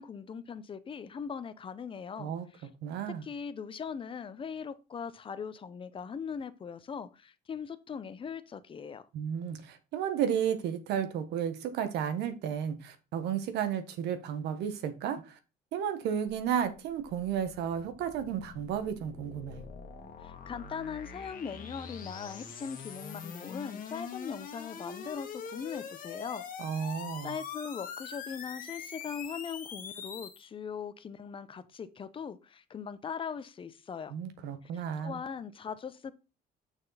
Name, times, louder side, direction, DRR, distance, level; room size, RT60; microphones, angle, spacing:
voice 1, 0.0-2.7 3.2-9.1 20.2-26.5 26.8-26.9 27.2-34.1 34.6-36.1, left 6 dB, 30° left, 0.7 m, -40 dB
voice 2, 2.8-3.2 9.1-15.4 15.7-19.6 26.6-27.3 34.1-35.2, right 8 dB, 85° right, 1.3 m, -33 dB
sound 1, 16.3-30.4, left 6 dB, 55° left, 1.6 m, -44 dB
6.5 x 6.2 x 4.0 m
cardioid pair, 110°, 17 cm